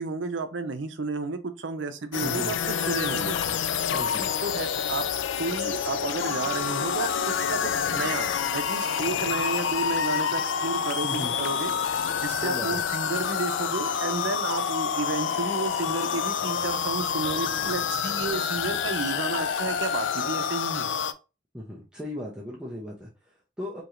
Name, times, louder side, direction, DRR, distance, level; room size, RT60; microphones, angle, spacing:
voice 1, 0.0-3.4 4.4-5.1 5.4-7.1 7.5-20.9, right 3 dB, 80° right, 9 dB, 0.6 m, -32 dB
sound 1, 2.1-21.1, left 7 dB, 80° left, 0.4 m, -28 dB
voice 2, 2.2-2.6 3.9-4.3 11.0-11.3 12.4-12.8 21.5-23.8, left 1 dB, 5° right, -4 dB, 0.6 m, -36 dB
4.7 x 2.9 x 2.5 m, 0.30 s
head